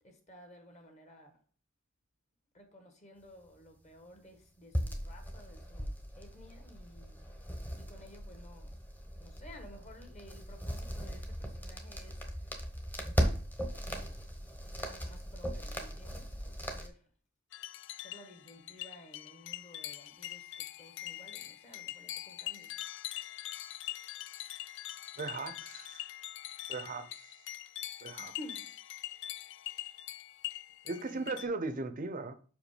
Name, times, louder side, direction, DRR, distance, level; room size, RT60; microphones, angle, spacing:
voice 1, 0.0-1.4 2.5-8.8 9.2-12.7 13.7-14.2 14.7-17.1 18.0-22.8 28.2-28.9 30.9-31.5, left 1 dB, 35° left, 1.4 m, -55 dB
sound 1, 4.7-16.9, equal, 10° left, 0.9 m, -38 dB
sound 2, 17.5-31.5, left 14 dB, 60° left, 0.3 m, -43 dB
voice 2, 25.2-26.0 26.7-27.1 28.0-28.3 30.8-32.3, right 3 dB, 40° right, 0.6 m, -37 dB
5.6 x 5.1 x 5.0 m
head